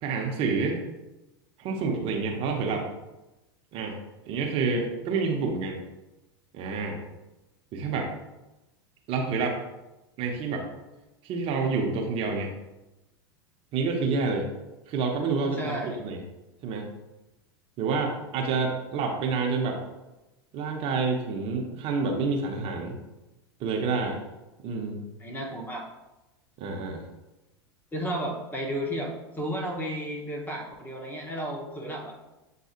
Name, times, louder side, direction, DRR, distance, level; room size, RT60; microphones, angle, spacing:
voice 1, 0.0-0.8 1.6-2.8 3.7-4.0 4.3-5.8 6.5-7.0 7.7-8.1 9.1-9.6 10.2-10.7 11.2-12.5 13.7-14.5 14.9-16.2 16.6-16.9 17.8-19.8 20.5-23.0 23.6-24.2 24.6-25.0 26.6-27.0, right 4 dB, 45° right, 1 dB, 0.9 m, -28 dB
voice 2, 15.5-16.0 25.2-25.9 27.9-32.2, equal, 15° left, 0 dB, 1.0 m, -33 dB
7.3 x 2.6 x 2.5 m, 1.0 s
hypercardioid pair, 95°, 14 cm